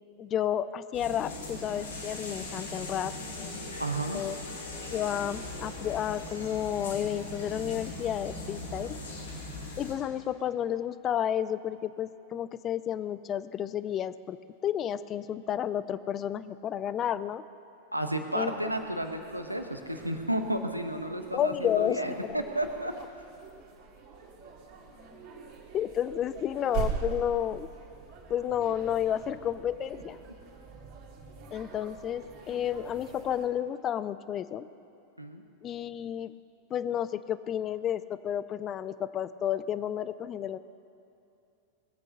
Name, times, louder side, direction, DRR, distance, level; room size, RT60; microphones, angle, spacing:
voice 1, 0.2-3.7 4.1-4.4 4.9-9.0 9.8-14.4 14.6-17.4 18.3-18.5 21.3-22.0 22.3-22.4 25.7-27.7 28.3-30.2 31.5-34.7 35.6-36.3 36.7-40.6, left 10 dB, 30° left, 15 dB, 0.5 m, -31 dB
sound 1, 0.9-10.0, left 2 dB, 70° left, 3.4 m, -39 dB
voice 2, 3.8-4.2 17.9-22.9 35.2-35.4, right 1 dB, 90° right, 6 dB, 1.0 m, -32 dB
sound 2, 18.5-33.4, right 6 dB, 45° right, 2.4 m, -43 dB
19.5 x 8.5 x 6.5 m, 2.6 s
figure-of-eight pair, 90°, 0 cm